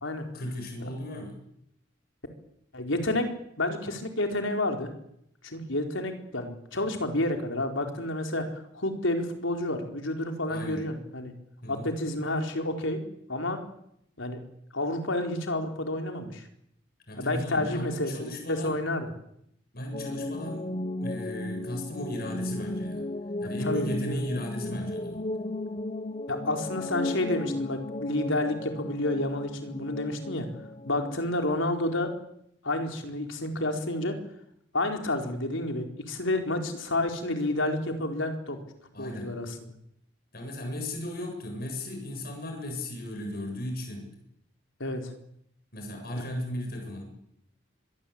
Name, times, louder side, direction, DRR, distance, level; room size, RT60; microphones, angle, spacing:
voice 1, 0.3-1.4 10.5-10.9 11.6-11.9 17.1-18.8 19.7-20.7 21.0-23.1 23.4-25.3 38.9-39.4 40.3-44.1 45.7-47.0, left 1 dB, 50° left, 3 dB, 7.8 m, -36 dB
voice 2, 2.7-3.3 3.6-4.9 5.4-11.3 11.7-13.0 13.3-13.6 14.2-14.4 14.7-16.4 17.2-19.1 23.6-24.2 26.3-30.5 30.9-32.1 32.6-34.2 34.7-38.6 39.0-39.5 44.8-45.1, left 1 dB, 70° left, 4 dB, 4.5 m, -30 dB
sound 1, 19.9-31.3, left 2 dB, 30° left, 1.0 m, -35 dB
25.5 x 22.0 x 8.8 m, 0.76 s
head